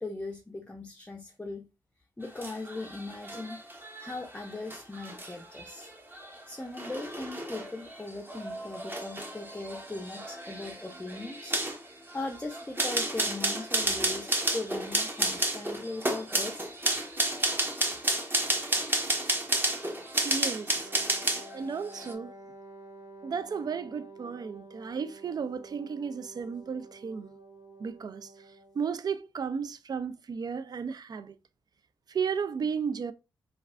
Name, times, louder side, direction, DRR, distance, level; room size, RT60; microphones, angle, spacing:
voice 1, 0.0-1.7 2.2-3.6 4.0-5.9 6.5-11.6 12.1-16.7, left 2 dB, 15° left, 0.5 m, -39 dB
sound 1, 2.2-21.6 21.9-22.1, right 1 dB, 25° right, 0.9 m, -32 dB
voice 2, 20.2-20.8 21.5-22.3 23.2-27.3 27.8-28.2 28.8-31.4 32.1-33.1, right 6 dB, 45° right, 0.4 m, -34 dB
Wind instrument woodwind instrument, 20.8-28.9, right 1 dB, 75° right, 1.1 m, -50 dB
3.2 x 2.3 x 2.4 m
supercardioid pair, 45°, 9 cm